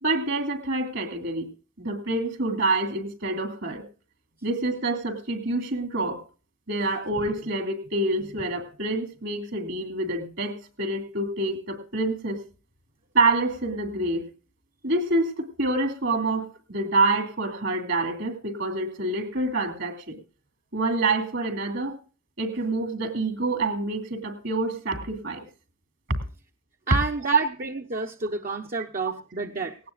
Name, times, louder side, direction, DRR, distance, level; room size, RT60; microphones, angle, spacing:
voice 1, 0.0-1.5 1.8-3.9 4.4-6.2 6.7-12.4 13.1-14.2 14.8-20.2 20.7-22.0 22.4-25.4 26.1-26.2, right 2 dB, 60° right, 7 dB, 2.5 m, -27 dB
voice 2, 26.9-29.8, right 3 dB, 45° right, 3 dB, 0.9 m, -30 dB
18.5 x 17.5 x 2.4 m, 0.36 s
head